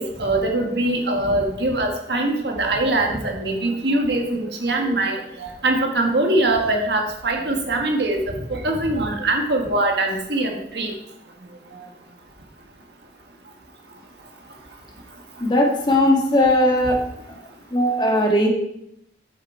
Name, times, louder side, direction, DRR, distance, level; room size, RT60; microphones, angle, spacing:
voice 1, 0.0-8.2 8.5-10.9, right 2 dB, 70° right, 2 dB, 1.6 m, -22 dB
voice 2, 15.4-17.0 17.3-17.4 17.7-18.5, left 1 dB, 25° left, 0 dB, 1.5 m, -18 dB
8.8 x 7.1 x 4.6 m, 0.78 s
head